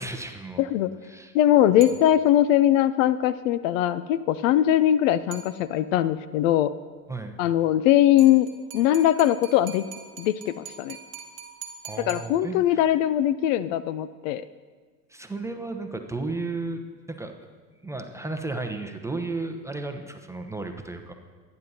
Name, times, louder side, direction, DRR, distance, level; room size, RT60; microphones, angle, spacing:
voice 1, 0.0-0.6 1.0-1.3 7.1-7.4 11.8-13.0 15.1-16.8 17.1-17.3 17.8-21.1, right 3 dB, 5° right, 4 dB, 0.9 m, -33 dB
voice 2, 0.6-0.9 1.3-6.7 7.4-8.5 8.7-9.8 10.2-11.0 12.1-14.4, left 12 dB, 50° left, 15 dB, 0.5 m, -21 dB
sound 1, 1.8-2.6 5.3-6.1 8.2-12.9, right 7 dB, 30° right, 2.1 m, -44 dB
23.5 x 9.7 x 2.8 m, 1.5 s
hypercardioid pair, 85°, 50 cm